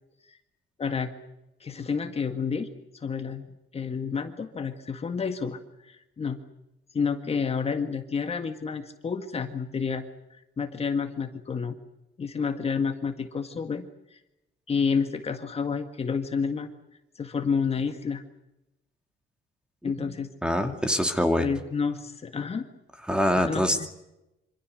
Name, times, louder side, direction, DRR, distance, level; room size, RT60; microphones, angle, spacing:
voice 1, 0.8-1.1 1.6-2.7 2.9-3.5 3.7-6.4 6.9-11.8 12.2-14.2 14.7-16.7 17.2-18.2 19.8-20.3 21.4-22.7 23.4-23.9, left 5 dB, 30° left, 6 dB, 1.8 m, -30 dB
voice 2, 20.4-21.5 23.1-23.8, equal, 5° right, 6 dB, 2.4 m, -24 dB
26.5 x 26.0 x 6.5 m, 0.92 s
cardioid pair, 150°, 21 cm